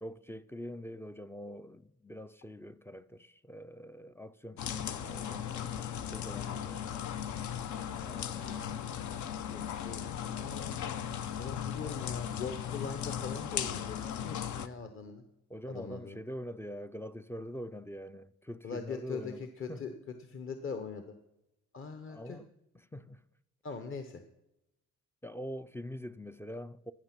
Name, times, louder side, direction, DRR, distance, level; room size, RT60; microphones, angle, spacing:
voice 1, 0.0-6.9 8.0-8.7 15.5-19.9 22.1-22.5 22.9-23.2 25.2-26.9, equal, 10° left, 0.3 m, -44 dB
sound 1, 4.6-14.7, left 9 dB, 70° left, 0.8 m, -37 dB
voice 2, 8.3-8.9 9.5-10.8 11.4-15.2 15.7-16.2 18.6-21.1 21.7-22.4 23.6-24.2, left 5 dB, 45° left, 0.9 m, -42 dB
15.0 x 5.9 x 5.9 m
cardioid pair, 90°, 30 cm